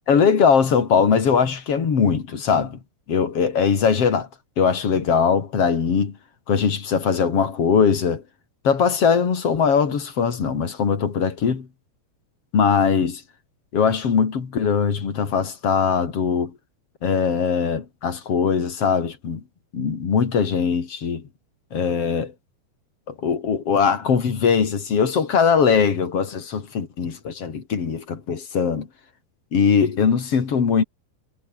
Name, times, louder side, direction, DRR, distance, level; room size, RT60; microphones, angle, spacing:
voice 1, 0.1-2.8 3.1-4.3 4.6-6.2 6.5-8.2 8.6-11.7 12.5-13.2 13.7-16.5 17.0-19.4 19.7-21.2 21.7-22.3 23.1-28.9 29.5-30.8, left 6 dB, 40° left, 3.3 m, -21 dB
omnidirectional pair, 5.1 m